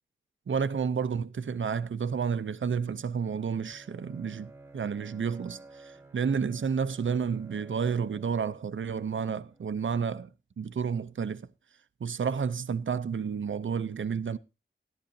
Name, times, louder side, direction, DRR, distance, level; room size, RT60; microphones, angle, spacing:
voice 1, 0.5-10.3 10.6-11.4 12.0-14.4, right 6 dB, 70° right, 0.6 m, -31 dB
Bowed string instrument, 2.1-9.9, right 2 dB, 10° right, 1.2 m, -54 dB
13.5 x 11.5 x 2.6 m
cardioid pair, 40°, 21 cm